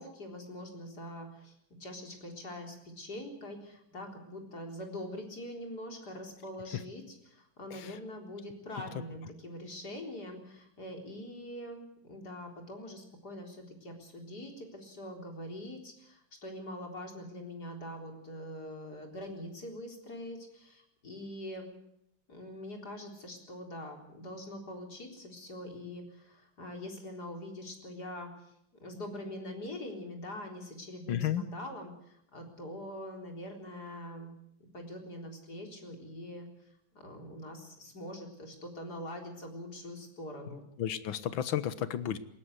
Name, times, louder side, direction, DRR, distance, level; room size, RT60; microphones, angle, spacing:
voice 1, 0.0-21.7 22.3-28.5 28.8-34.3 34.6-36.5 36.9-40.6, left 1 dB, 55° left, 2 dB, 4.5 m, -43 dB
voice 2, 31.1-31.4 40.8-42.2, left 10 dB, 80° left, 14 dB, 1.9 m, -32 dB
20.0 x 18.0 x 8.1 m, 0.74 s
omnidirectional pair, 2.1 m